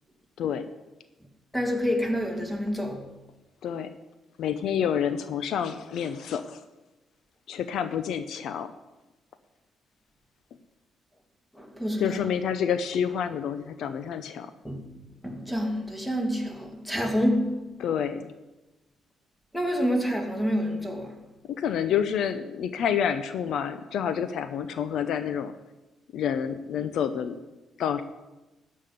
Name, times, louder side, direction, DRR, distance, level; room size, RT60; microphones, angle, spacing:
voice 1, 1.5-3.1 11.5-12.3 14.6-14.8 15.2-17.7 19.5-21.2, equal, 5° left, 2.3 m, -28 dB
voice 2, 4.4-6.6 7.5-8.7 12.0-14.5 17.8-18.3 21.5-25.5 26.1-27.4 27.8-28.0, left 8 dB, 75° left, 0.6 m, -28 dB
13.5 x 5.6 x 9.3 m
cardioid pair, 90°, 0 cm